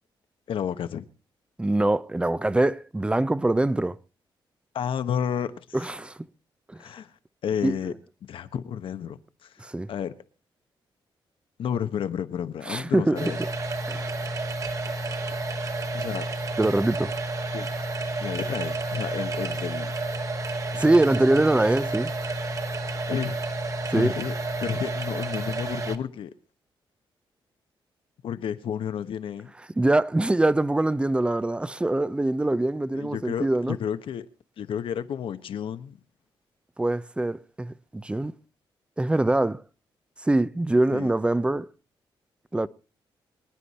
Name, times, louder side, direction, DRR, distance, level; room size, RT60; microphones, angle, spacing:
voice 1, 0.5-1.0 4.7-5.9 6.8-7.1 7.4-7.9 8.3-9.5 9.9-10.1 11.6-13.4 15.9-16.3 17.5-17.7 18.2-19.9 23.1-23.4 23.9-24.3 24.6-26.3 28.2-29.5 32.9-34.3 34.6-36.0 40.9-41.1, left 8 dB, 75° left, 1.1 m, -31 dB
voice 2, 1.6-4.0 5.7-6.2 6.7-6.8 7.6-7.8 9.6-9.9 12.7-13.3 13.9-14.2 16.6-17.1 20.7-22.1 23.9-24.1 29.8-33.8 36.8-38.3 39.0-39.6 40.2-41.7 42.5-42.7, right 2 dB, 10° right, 0.6 m, -23 dB
sound 1, 13.2-26.0, right 2 dB, 35° right, 1.5 m, -30 dB
24.0 x 10.0 x 4.2 m
cardioid pair, 105°, 9 cm